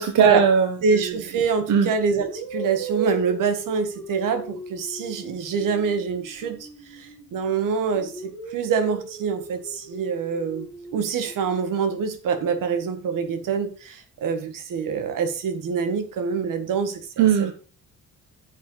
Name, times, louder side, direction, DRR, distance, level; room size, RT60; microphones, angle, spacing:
voice 1, 0.0-1.1 1.7-1.9 17.2-17.5, right 7 dB, 60° right, 5 dB, 1.2 m, -19 dB
voice 2, 0.8-17.5, right 5 dB, 75° right, 8 dB, 1.8 m, -25 dB
sound 1, 1.1-1.4 2.2-7.5 7.9-11.9, right 3 dB, 10° left, 3.2 m, -37 dB
9.5 x 7.1 x 4.0 m, 0.36 s
cardioid pair, 170°, 32 cm